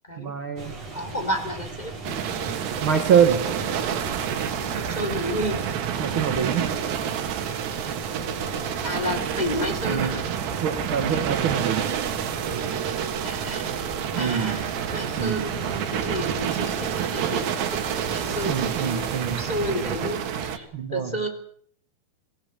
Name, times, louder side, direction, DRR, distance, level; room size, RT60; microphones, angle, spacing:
voice 1, 0.2-0.7 2.8-3.5 6.0-6.7 9.9-11.9 12.4-13.4 14.1-14.6 15.2-15.5 18.5-19.4 20.7-21.1, right 7 dB, 65° right, 6 dB, 1.3 m, -25 dB
sound 1, 0.6-20.1, right 2 dB, 40° right, 4.6 m, -38 dB
voice 2, 0.9-2.2 4.7-5.6 8.8-10.2 13.2-13.7 14.2-17.8 18.1-21.3, equal, 10° left, 4 dB, 3.2 m, -31 dB
sound 2, 2.0-20.6, right 9 dB, 85° right, 3.9 m, -29 dB
24.0 x 17.0 x 8.1 m, 0.63 s
omnidirectional pair, 4.7 m